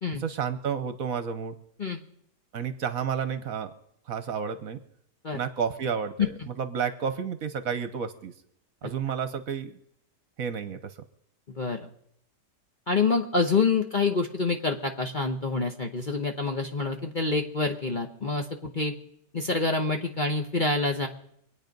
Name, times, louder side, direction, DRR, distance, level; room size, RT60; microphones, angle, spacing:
voice 1, 0.2-1.6 2.5-3.7 4.1-4.8 5.3-8.3 8.8-9.8 10.4-11.0, right 7 dB, 60° right, 11 dB, 1.2 m, -31 dB
voice 2, 11.5-11.9 12.9-18.9 19.3-21.1, left 4 dB, 35° left, 3 dB, 0.9 m, -27 dB
24.5 x 9.1 x 5.3 m, 0.72 s
omnidirectional pair, 1.8 m